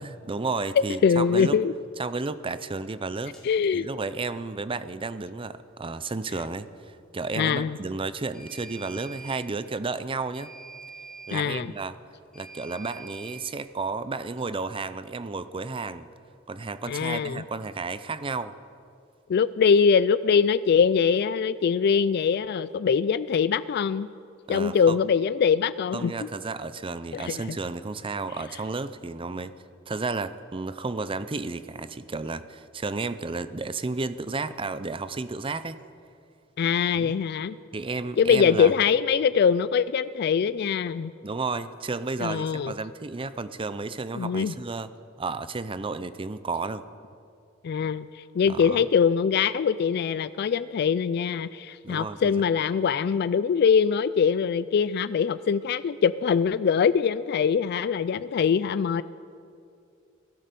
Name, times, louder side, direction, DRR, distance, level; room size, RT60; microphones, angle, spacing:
voice 1, 0.0-1.6 2.0-3.4 3.7-10.5 11.3-12.0 12.3-16.1 16.5-18.5 24.5-25.0 25.9-29.5 29.9-35.8 37.0-37.1 37.7-38.7 41.2-44.9 45.2-46.8 48.4-48.8 51.8-52.3, right 3 dB, 25° right, 14 dB, 0.5 m, -32 dB
voice 2, 1.0-1.7 3.4-3.9 7.4-7.8 11.3-11.7 16.9-17.4 19.3-24.1 24.5-26.3 27.1-27.6 36.6-37.6 38.2-41.1 42.2-42.7 44.1-44.5 47.6-59.0, left 6 dB, 55° left, 16 dB, 0.3 m, -23 dB
sound 1, 3.3-3.5 8.3-9.4 10.3-11.4 12.3-13.4, right 5 dB, 5° left, 4.0 m, -44 dB
17.0 x 12.5 x 6.8 m, 2.4 s
head